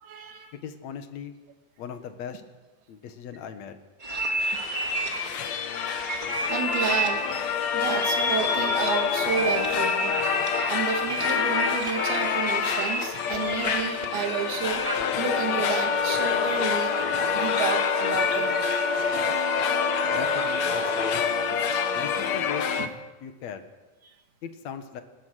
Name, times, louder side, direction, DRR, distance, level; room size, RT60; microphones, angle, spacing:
voice 1, 0.0-0.5 4.8-5.8 6.5-10.2 10.7-14.9 15.2-17.0 17.3-18.8 22.0-22.3, right 7 dB, 65° right, 5 dB, 3.9 m, -31 dB
voice 2, 0.5-1.3 1.8-2.4 2.9-3.8 20.0-21.1 21.9-22.9 23.2-23.7 24.4-25.0, left 8 dB, 65° left, 8 dB, 1.8 m, -38 dB
sound 1, 4.0-15.2, right 1 dB, 20° right, 1.6 m, -31 dB
sound 2, 4.4-22.9, left 8 dB, 80° left, 1.5 m, -28 dB
Wind instrument woodwind instrument, 15.2-22.2, left 3 dB, 15° left, 2.3 m, -29 dB
27.5 x 20.0 x 6.4 m, 1.2 s
omnidirectional pair, 5.1 m